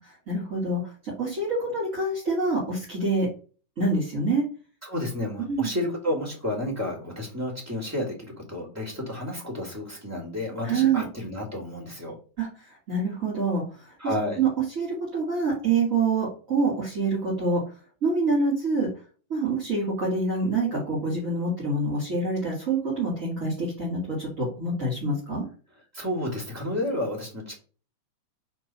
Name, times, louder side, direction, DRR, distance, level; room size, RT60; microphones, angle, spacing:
voice 1, 0.0-3.3 3.8-4.4 5.4-5.7 10.6-11.1 12.4-13.9 14.4-14.5 14.8-17.6 18.0-18.9 19.3-25.5, right 3 dB, 25° right, -6 dB, 2.5 m, -26 dB
voice 2, 4.8-12.2 14.0-14.4 25.9-27.6, left 1 dB, 5° right, -1 dB, 1.7 m, -31 dB
4.7 x 4.5 x 5.7 m, 0.37 s
omnidirectional pair, 3.9 m